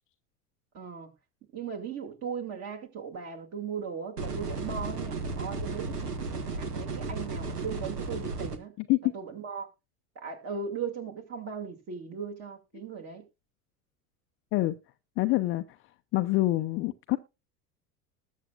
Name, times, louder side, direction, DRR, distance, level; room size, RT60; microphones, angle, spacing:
voice 1, 0.7-1.1 1.5-8.7 9.1-9.7 10.2-13.2, right 6 dB, 30° right, 2.5 m, -38 dB
sound 1, 4.2-8.6, right 3 dB, 80° right, 1.5 m, -34 dB
voice 2, 15.2-15.6 16.1-17.2, left 18 dB, 30° left, 0.5 m, -25 dB
20.0 x 7.3 x 2.4 m
figure-of-eight pair, 80°, 46 cm